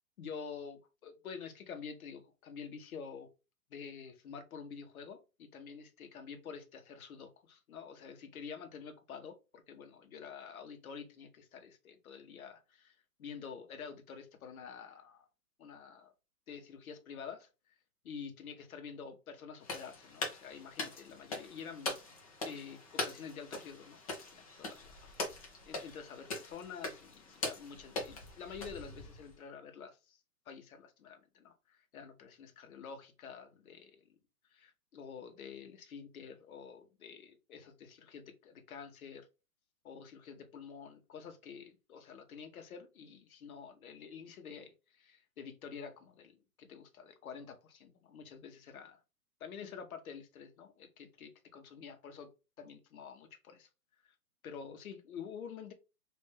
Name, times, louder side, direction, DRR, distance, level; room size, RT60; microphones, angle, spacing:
voice 1, 0.2-3.3 3.7-15.3 15.6-16.1 16.5-17.7 18.0-22.0 22.4-25.1 25.7-30.2 30.5-34.2 34.5-39.3 39.8-49.0 49.4-52.3 52.6-53.7 54.0-54.1 54.4-55.7, left 6 dB, 60° left, 0.9 m, -48 dB
sound 1, 19.6-29.4, left 3 dB, 25° left, 0.5 m, -42 dB
3.3 x 2.5 x 3.3 m
hypercardioid pair, 145°, 49 cm